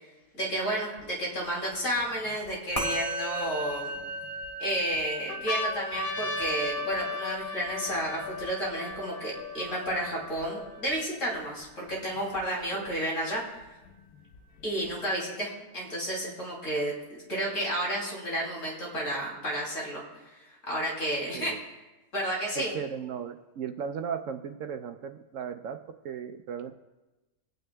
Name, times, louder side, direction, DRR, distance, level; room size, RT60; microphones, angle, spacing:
voice 1, 0.3-4.0 4.6-13.5 14.6-16.9 17.3-20.0 20.7-21.5 22.1-22.7, right 1 dB, 60° left, -3 dB, 3.2 m, -31 dB
sound 1, 1.0-1.1 1.7-3.0 3.7-4.5 4.9-5.0 5.3-10.9 11.6-11.7 11.9-12.9 13.9-14.9, left 2 dB, 75° left, 1.3 m, -36 dB
Musical instrument, 2.8-12.3, right 1 dB, 25° left, 1.6 m, -39 dB
voice 2, 22.6-25.8 26.0-26.8, right 7 dB, 70° right, 7 dB, 0.9 m, -36 dB
27.0 x 9.2 x 2.3 m, 1.1 s
omnidirectional pair, 1.5 m